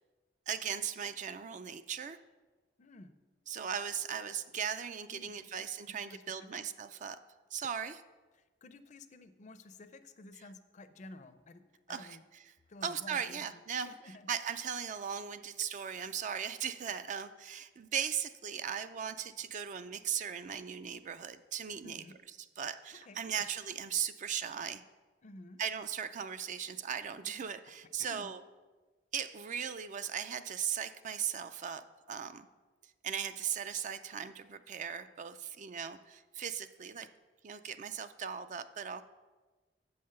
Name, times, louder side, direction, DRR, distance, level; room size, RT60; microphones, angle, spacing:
voice 1, 0.5-2.2 3.5-7.2 7.5-8.0 11.9-12.4 12.8-22.0 22.6-24.8 25.6-28.4 29.1-32.5 33.0-37.1 37.4-39.0, right 8 dB, 45° right, 11 dB, 0.4 m, -38 dB
voice 2, 2.8-3.1 5.1-5.5 5.9-6.6 8.3-12.2 12.7-13.5 13.8-14.3 21.8-22.2 23.1-23.4 25.2-25.6 28.0-28.3, left 2 dB, 40° left, 11 dB, 0.5 m, -52 dB
7.8 x 5.6 x 6.5 m, 1.3 s
head